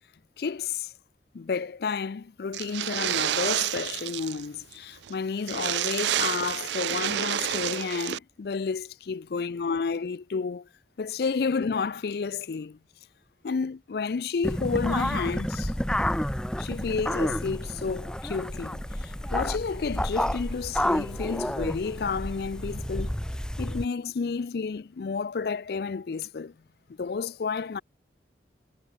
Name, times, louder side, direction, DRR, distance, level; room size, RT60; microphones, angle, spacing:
voice 1, 0.4-0.9 1.3-10.7 11.0-12.8 13.4-15.7 16.6-23.1 23.6-26.5 27.0-27.8, left 5 dB, 60° left, 0.4 m, -31 dB
sound 1, 2.5-4.5 4.7-4.8 5.1-5.2 5.4-8.2, right 12 dB, 75° right, 0.4 m, -29 dB
Lion-accoupl, 14.4-23.9, equal, 5° left, 0.5 m, -30 dB
head